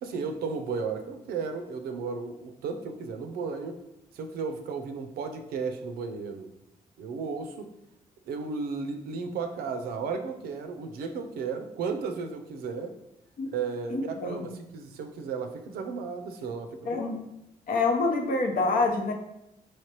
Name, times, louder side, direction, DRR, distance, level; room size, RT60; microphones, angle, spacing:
voice 1, 0.0-3.8 4.1-6.5 7.0-7.7 8.3-13.0 13.5-17.0, right 5 dB, 90° right, 6 dB, 0.5 m, -34 dB
voice 2, 13.9-14.5 16.9-17.2 17.7-19.1, left 3 dB, 70° left, 3 dB, 0.8 m, -26 dB
4.3 x 3.2 x 2.9 m, 0.85 s
cardioid pair, 65°, 15 cm